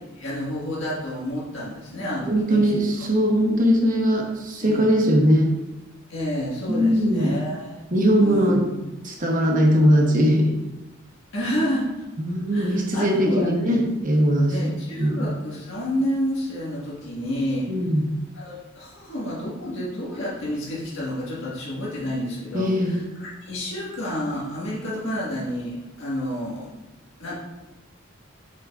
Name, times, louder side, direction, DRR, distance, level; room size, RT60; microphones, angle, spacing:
voice 1, 0.1-2.7 3.0-3.1 4.6-4.9 6.1-7.9 8.2-8.5 11.3-11.9 12.5-13.8 14.5-17.7 18.3-26.7 27.2-27.4, equal, 65° left, -7 dB, 1.7 m, -29 dB
voice 2, 2.2-5.5 6.7-7.3 7.9-8.6 9.0-10.5 12.2-14.6 15.0-15.2 17.7-18.0 22.5-23.0, equal, 40° right, 1 dB, 1.0 m, -20 dB
7.9 x 4.9 x 2.5 m, 1.0 s
head